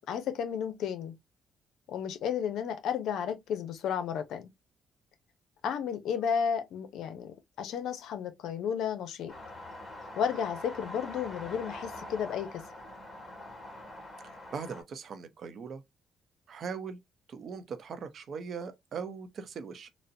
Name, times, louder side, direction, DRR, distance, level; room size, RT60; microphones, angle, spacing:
voice 1, 0.1-1.2 1.9-4.5 5.6-9.3 10.2-12.6, left 7 dB, 80° left, 0.7 m, -33 dB
sound 1, 9.3-14.8, left 1 dB, 25° left, 1.8 m, -44 dB
voice 2, 14.2-15.8 16.5-17.0 17.3-19.9, right 6 dB, 60° right, 0.7 m, -40 dB
4.0 x 2.1 x 2.6 m
cardioid pair, 90°, 0 cm